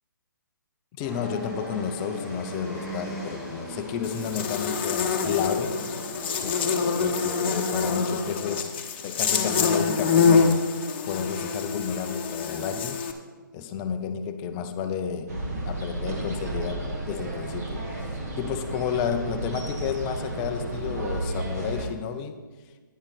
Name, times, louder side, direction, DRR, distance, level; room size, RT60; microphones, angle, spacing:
voice 1, 0.9-5.8 6.4-6.6 7.0-8.7 9.0-10.7 11.1-13.0 13.5-15.3 15.7-22.4, left 7 dB, 15° left, 7 dB, 0.5 m, -31 dB
sound 1, 1.0-7.9, equal, 5° right, 3.0 m, -38 dB
Buzz, 4.0-13.1, left 5 dB, 35° left, 1.0 m, -25 dB
sound 2, 15.3-21.9, right 2 dB, 50° right, 2.0 m, -32 dB
11.0 x 10.0 x 4.1 m, 1.4 s
hypercardioid pair, 160°, 11 cm